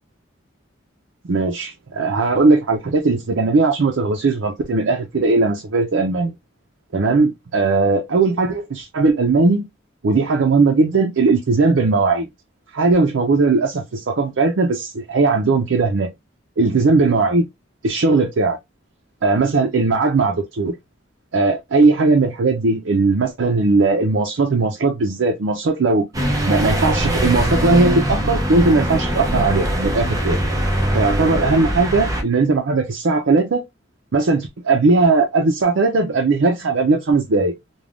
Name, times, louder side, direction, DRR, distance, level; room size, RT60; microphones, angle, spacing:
voice 1, 1.2-6.4 6.9-9.7 10.0-12.3 12.7-16.1 16.6-17.5 17.8-18.6 19.2-20.7 21.3-26.1 26.5-30.4 30.9-33.6 34.1-37.5, right 3 dB, 80° right, 0.5 m, -18 dB
sound 1, 26.1-32.2, equal, 20° right, 0.6 m, -21 dB
3.3 x 2.2 x 2.4 m
head